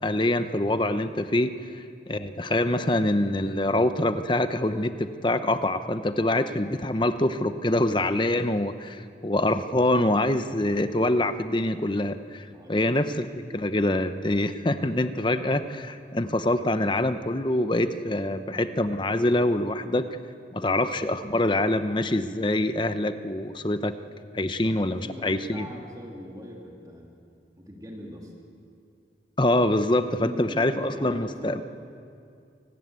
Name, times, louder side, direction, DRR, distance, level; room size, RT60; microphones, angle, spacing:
voice 1, 0.0-13.3 13.5-20.1 20.5-23.9 24.3-25.7 29.4-31.6, left 1 dB, 25° left, 10 dB, 0.9 m, -25 dB
voice 2, 12.4-12.9 13.5-13.6 18.1-18.6 20.6-21.0 24.4-27.1 27.6-28.3 30.0-31.6, equal, 20° right, -1 dB, 3.1 m, -42 dB
26.5 x 19.0 x 8.3 m, 2.4 s
head